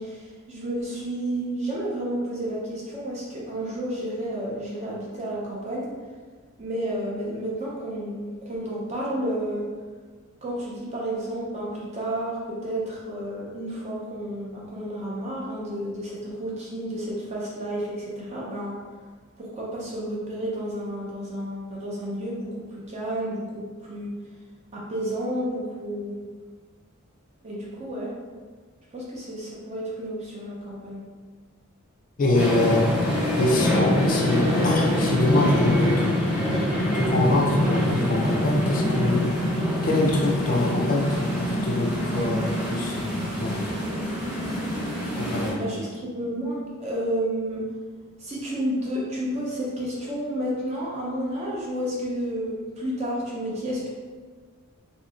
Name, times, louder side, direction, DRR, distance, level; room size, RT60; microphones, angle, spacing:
voice 1, 0.0-5.9 6.6-9.6 10.4-18.7 19.4-24.1 24.7-26.1 27.4-28.1 28.9-31.0 45.6-47.6 48.2-53.9, right 1 dB, 30° right, -5 dB, 0.6 m, -31 dB
voice 2, 32.2-32.9 33.4-36.4 36.9-39.2 39.8-43.7 45.2-45.8, left 2 dB, 40° left, -1 dB, 0.3 m, -25 dB
sound 1, 32.3-45.5, left 1 dB, 5° right, 1.0 m, -25 dB
2.9 x 2.7 x 2.5 m, 1.5 s
head